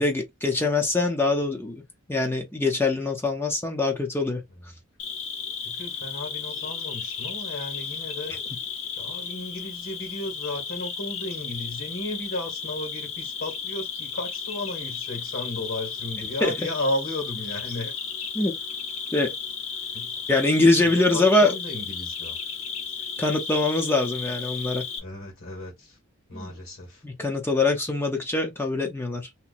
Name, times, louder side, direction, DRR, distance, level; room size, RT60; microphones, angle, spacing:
voice 1, 0.0-1.8 2.1-4.4 16.4-16.5 18.3-18.5 19.1-19.3 20.3-21.5 23.2-24.8 26.3-26.5 27.0-29.3, left 2 dB, 10° left, 0.5 m, -23 dB
Cricket, 5.0-25.0, left 6 dB, 85° left, 1.2 m, -34 dB
voice 2, 5.6-8.4 9.0-17.9 19.9-20.2 20.8-22.4 25.0-26.0 26.3-27.0, left 1 dB, 65° left, 1.6 m, -34 dB
2.9 x 2.1 x 4.0 m
head